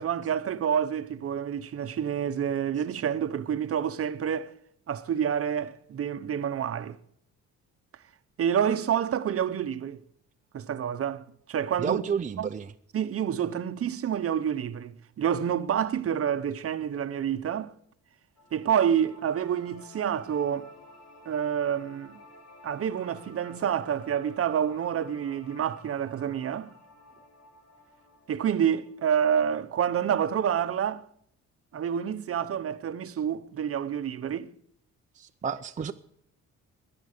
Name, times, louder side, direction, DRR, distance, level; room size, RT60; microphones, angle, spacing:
voice 1, 0.0-4.5 4.9-7.0 8.4-10.0 10.5-12.0 12.4-12.5 12.9-17.7 18.5-20.7 21.3-22.2 22.6-26.7 28.3-31.0 31.7-34.5, right 8 dB, 50° right, 0.9 m, -28 dB
voice 2, 11.8-12.7 35.1-35.9, right 6 dB, 25° right, 0.6 m, -31 dB
sound 1, 18.4-29.4, left 1 dB, 60° left, 2.9 m, -52 dB
18.5 x 10.5 x 6.7 m
cardioid pair, 125°, 30 cm